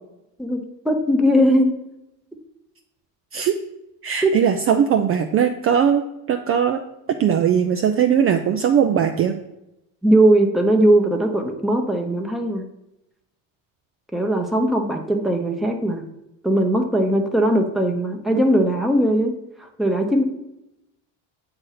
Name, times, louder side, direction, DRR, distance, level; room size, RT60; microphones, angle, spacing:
voice 1, 0.4-1.8 4.2-4.4 10.0-12.6 14.1-16.0 16.4-19.3 19.8-20.2, right 1 dB, ahead, 1 dB, 0.8 m, -19 dB
voice 2, 4.0-6.8 7.2-9.4, right 8 dB, 35° right, 5 dB, 0.4 m, -19 dB
7.8 x 2.7 x 5.7 m, 0.87 s
supercardioid pair, 105°, 38 cm